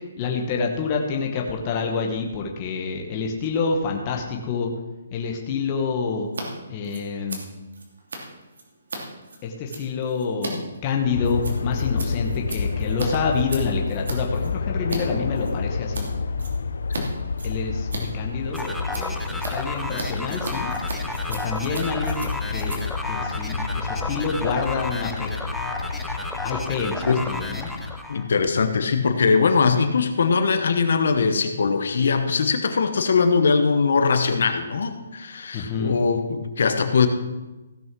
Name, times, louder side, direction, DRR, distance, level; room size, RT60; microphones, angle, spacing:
voice 1, 0.0-4.7 5.1-6.3 6.7-7.4 9.4-16.1 17.4-20.7 21.3-25.3 26.4-27.7 35.5-35.9, left 5 dB, 20° left, 1 dB, 1.0 m, -28 dB
Scissors, 6.2-6.4 6.7-15.0 15.3-16.1 16.4-17.0 17.3-24.1, right 3 dB, 70° right, 2.8 m, -37 dB
sound 1, 11.1-28.0, left 4 dB, 75° left, 0.7 m, -29 dB
sound 2, 18.5-28.3, left 2 dB, ahead, 0.5 m, -33 dB
voice 2, 28.1-37.1, left 5 dB, 50° left, 8 dB, 1.0 m, -21 dB
15.5 x 6.2 x 6.0 m, 1.1 s
hypercardioid pair, 180°, 0 cm